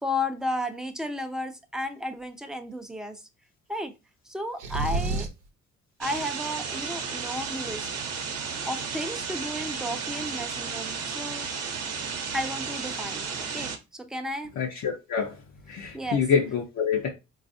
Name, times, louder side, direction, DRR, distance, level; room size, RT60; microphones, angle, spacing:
voice 1, 0.0-3.3 3.7-3.9 4.2-5.3 6.0-7.9 8.7-11.5 12.3-14.5 15.9-16.2, left 1 dB, ahead, 0.4 m, -33 dB
sound 1, 4.6-5.5, right 3 dB, 85° right, 0.7 m, -28 dB
sound 2, 6.0-13.8, right 5 dB, 55° right, 0.7 m, -33 dB
voice 2, 14.6-15.4 15.7-17.1, left 6 dB, 65° left, 0.7 m, -26 dB
3.9 x 2.4 x 2.6 m
cardioid pair, 90°, 30 cm